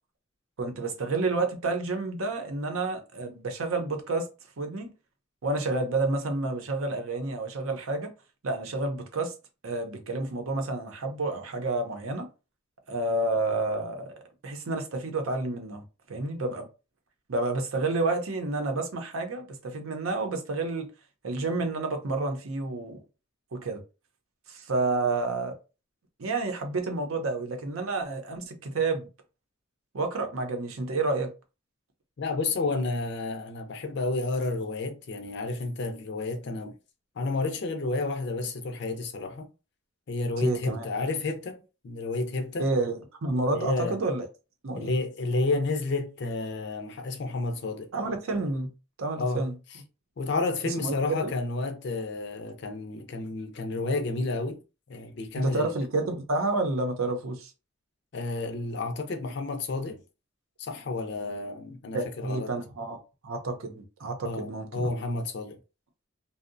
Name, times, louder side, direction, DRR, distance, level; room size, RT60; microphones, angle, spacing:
voice 1, 0.6-4.3 4.6-4.9 5.4-8.1 8.4-9.3 9.6-12.3 12.9-15.8 16.1-16.7 17.3-20.9 21.2-23.0 23.5-23.8 24.5-25.6 26.2-29.1 29.9-31.3 40.4-40.9 42.6-44.2 44.6-44.9 47.9-48.7 49.0-49.5 50.7-50.9 51.2-51.3 55.3-57.5 61.9-63.0 63.2-64.9, right 2 dB, 85° right, 0.6 m, -29 dB
voice 2, 32.2-36.7 37.2-39.5 40.1-42.7 43.5-44.0 44.8-47.9 49.2-49.4 50.2-54.6 54.9-55.7 58.1-60.0 60.6-62.5 64.2-65.6, left 3 dB, 55° left, 0.4 m, -31 dB
2.7 x 2.0 x 2.5 m
head